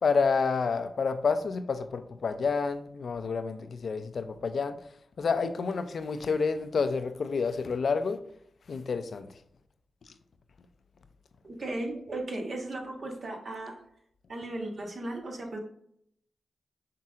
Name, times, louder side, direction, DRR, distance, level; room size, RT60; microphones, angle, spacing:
voice 1, 0.0-4.8 5.2-8.2 8.7-9.3, left 5 dB, 70° left, 0.4 m, -29 dB
voice 2, 11.4-13.8 14.3-15.6, right 2 dB, 60° right, 1.1 m, -36 dB
5.7 x 3.6 x 2.4 m
supercardioid pair, 40°, 0 cm